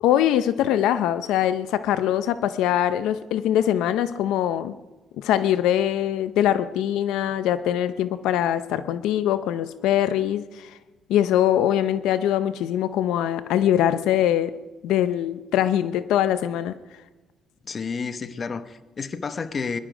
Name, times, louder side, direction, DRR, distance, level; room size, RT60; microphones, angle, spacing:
voice 1, 0.0-4.8 5.2-10.8 11.1-14.5 14.8-16.7, left 11 dB, 85° left, 13 dB, 0.6 m, -22 dB
voice 2, 17.7-19.8, left 5 dB, 40° left, 11 dB, 1.0 m, -30 dB
22.0 x 11.5 x 5.1 m, 1.2 s
cardioid pair, 95°, 0 cm